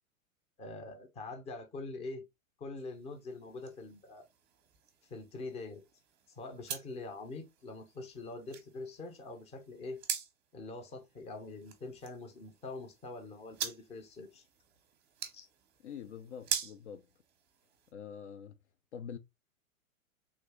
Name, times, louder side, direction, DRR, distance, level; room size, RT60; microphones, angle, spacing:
voice 1, 0.6-2.2 2.6-4.3 5.0-5.8 6.4-10.0 10.5-14.5 15.3-15.5, left 3 dB, 15° left, 0.7 m, -44 dB
sound 1, 2.8-17.9, right 8 dB, 25° right, 0.7 m, -45 dB
voice 2, 15.8-17.1 17.9-18.6 18.9-19.2, left 7 dB, 55° left, 0.6 m, -45 dB
3.5 x 2.7 x 3.6 m
figure-of-eight pair, 105°, 41 cm